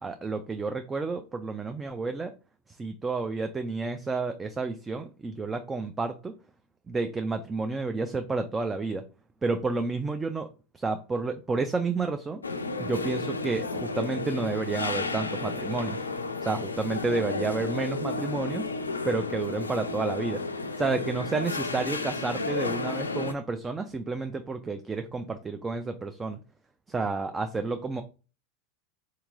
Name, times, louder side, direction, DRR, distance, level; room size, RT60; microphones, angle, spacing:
voice 1, 0.0-2.3 2.7-6.3 6.9-9.0 9.4-10.5 10.7-12.4 12.8-16.0 16.4-18.7 19.0-20.4 20.8-26.4 26.9-28.0, right 3 dB, 15° right, 7 dB, 0.3 m, -30 dB
sound 1, 12.4-23.3, left 3 dB, 90° left, 0.3 m, -32 dB
3.7 x 2.9 x 2.5 m, 0.33 s
figure-of-eight pair, 85°, 0 cm